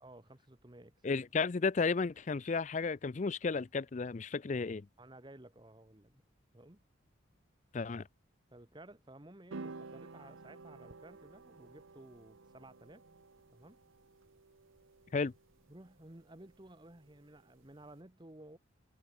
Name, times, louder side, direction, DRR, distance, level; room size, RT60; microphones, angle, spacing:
voice 1, 0.0-1.2 5.0-6.2 6.5-6.8 8.5-13.1 13.5-13.8 15.7-18.6, right 1 dB, 25° right, 1.2 m, -55 dB
voice 2, 1.0-4.9 7.7-8.0 15.1-15.3, left 4 dB, 35° left, 0.4 m, -33 dB
sound 1, 9.5-17.9, right 3 dB, 90° right, 1.0 m, -53 dB
head